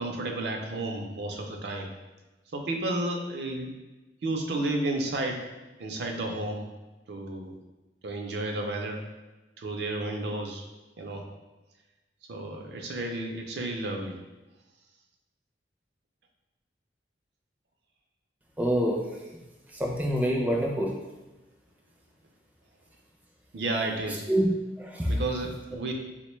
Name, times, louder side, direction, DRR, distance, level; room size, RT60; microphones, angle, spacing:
voice 1, 0.0-1.9 2.5-3.7 4.2-5.4 5.8-6.7 7.1-7.6 8.0-9.0 9.6-10.6 11.0-11.2 12.3-14.2 23.5-24.2 25.1-25.9, right 2 dB, 70° right, 2 dB, 0.4 m, -32 dB
voice 2, 18.6-19.0 19.7-20.9 24.3-24.5 24.8-25.2, equal, 10° right, -2 dB, 0.4 m, -26 dB
3.9 x 2.1 x 3.0 m, 1.1 s
head